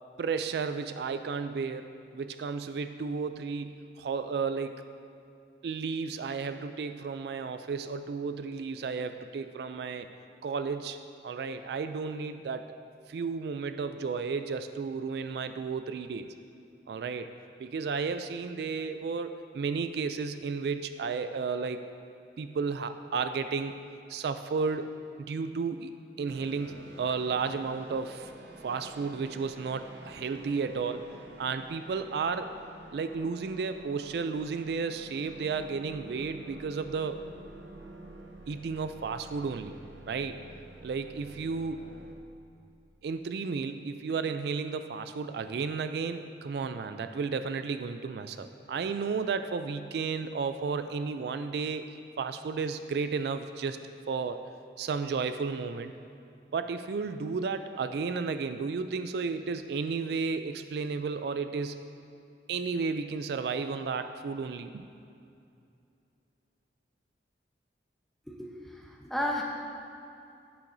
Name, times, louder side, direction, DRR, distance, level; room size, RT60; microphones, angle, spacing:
voice 1, 0.2-4.8 5.6-10.1 10.4-12.7 13.1-16.3 16.9-17.3 17.6-21.8 22.4-23.7 24.1-24.9 25.2-25.9 26.2-28.3 28.6-31.0 31.4-32.5 32.9-37.2 38.5-39.7 40.1-40.4 40.8-41.8 43.0-51.9 52.2-53.8 54.1-54.4 54.8-55.9 56.5-61.8 62.5-64.9, right 5 dB, 65° right, 9 dB, 0.3 m, -33 dB
sound 1, 26.3-42.2, right 2 dB, 85° right, 0.8 m, -49 dB
voice 2, 68.3-69.4, left 1 dB, ahead, -1 dB, 0.8 m, -33 dB
11.5 x 8.9 x 2.6 m, 2.6 s
head